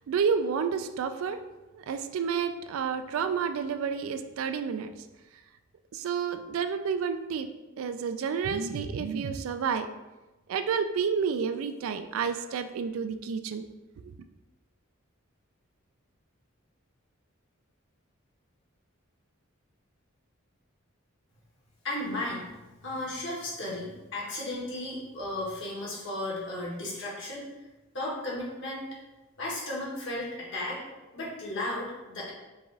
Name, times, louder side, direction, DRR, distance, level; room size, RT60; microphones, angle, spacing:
voice 1, 0.1-1.4 1.7-4.9 5.9-7.5 7.8-9.9 10.5-13.7 14.0-14.1, right 6 dB, 75° right, 10 dB, 0.3 m, -30 dB
voice 2, 21.8-22.4 22.8-27.5 27.9-28.8 29.4-30.8 31.1-32.3, left 1 dB, 60° left, -4 dB, 1.4 m, -34 dB
4.8 x 2.5 x 3.9 m, 1.1 s
head